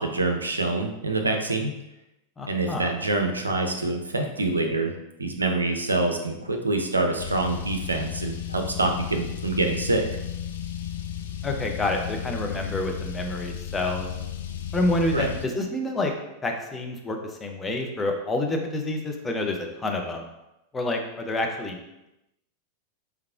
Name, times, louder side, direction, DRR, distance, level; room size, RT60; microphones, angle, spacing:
voice 1, 0.0-1.7 2.5-4.9 5.2-10.1 15.1-15.3, right 2 dB, 80° right, 3 dB, 0.5 m, -26 dB
voice 2, 2.4-2.9 11.4-14.1 14.7-16.1 16.4-20.3 20.7-21.8, left 2 dB, 15° left, 2 dB, 0.6 m, -28 dB
Car, 7.2-15.4, left 9 dB, 60° left, 0.3 m, -34 dB
4.7 x 3.5 x 2.4 m, 0.91 s
figure-of-eight pair, 90°, 0 cm